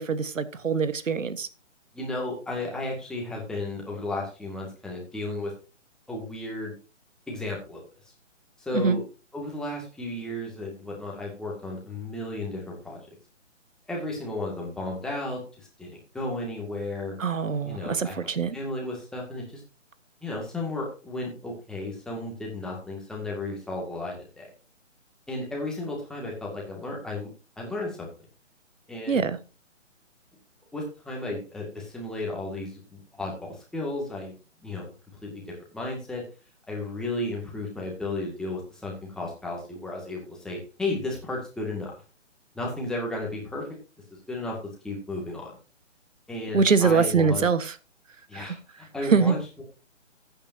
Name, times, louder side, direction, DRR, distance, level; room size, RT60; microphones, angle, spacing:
voice 1, 0.0-1.5 8.7-9.0 17.2-18.6 29.1-29.4 46.5-47.7 48.3-48.5 49.1-49.4, right 5 dB, 85° right, 14 dB, 1.4 m, -23 dB
voice 2, 1.9-5.5 6.1-6.8 7.3-7.8 8.6-9.0 9.3-13.0 13.9-17.2 17.6-18.2 18.5-19.6 20.2-24.5 25.3-27.3 27.6-28.1 28.9-29.3 30.7-34.3 34.6-34.9 35.2-36.2 36.7-42.0 42.5-43.7 44.3-44.6 44.8-45.5 46.3-47.5 48.3-49.6, left 2 dB, ahead, -2 dB, 1.9 m, -34 dB
13.5 x 8.9 x 2.7 m, 0.32 s
hypercardioid pair, 155°, 38 cm